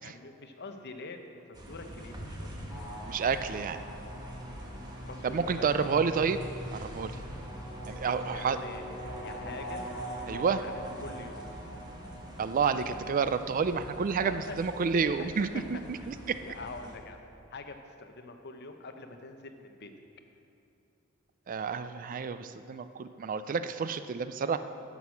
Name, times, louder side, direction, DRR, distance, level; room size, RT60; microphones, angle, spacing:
voice 1, 0.0-2.5 5.0-6.0 8.1-9.8 10.6-11.4 14.2-14.6 15.2-15.8 16.4-17.2 17.5-19.9, left 3 dB, 50° left, 6 dB, 0.8 m, -44 dB
sound 1, 1.5-17.0, equal, 20° right, 1.3 m, -45 dB
sound 2, 2.7-13.8, right 1 dB, 5° right, 2.7 m, -43 dB
voice 2, 3.1-3.8 5.2-6.4 6.7-7.1 7.8-8.6 10.3-10.6 12.4-15.5 15.9-16.4 21.5-24.6, right 5 dB, 40° right, 11 dB, 0.3 m, -29 dB
11.0 x 6.2 x 7.0 m, 2.6 s
head